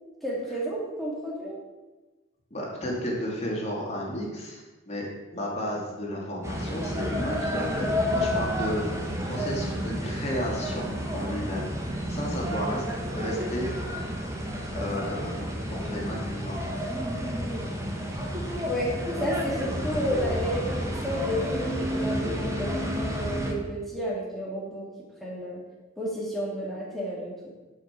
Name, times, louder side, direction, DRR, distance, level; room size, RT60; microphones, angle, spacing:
voice 1, 0.2-1.6 18.7-18.9 19.2-24.9 25.2-25.6 26.0-27.3, equal, ahead, -5 dB, 2.6 m, -31 dB
voice 2, 2.5-11.7 12.1-12.9 13.1-13.7 14.7-15.4 15.8-16.6, equal, 35° left, -3 dB, 2.6 m, -33 dB
sound 1, 6.4-23.5, equal, 15° right, 1.4 m, -30 dB
11.0 x 5.8 x 5.9 m, 1.2 s
head